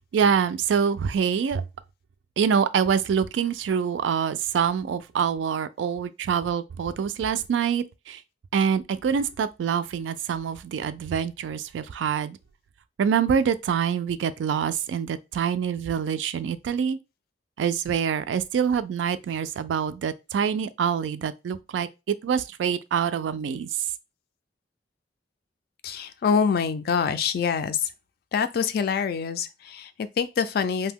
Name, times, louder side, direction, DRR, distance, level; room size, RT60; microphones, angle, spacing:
voice 1, 0.1-1.6 2.4-8.2 8.5-12.4 13.0-17.0 17.6-23.7, right 7 dB, 75° right, 0.3 m, -25 dB
voice 2, 25.8-27.9 28.3-30.9, left 6 dB, 55° left, 0.3 m, -25 dB
2.7 x 2.1 x 3.5 m
head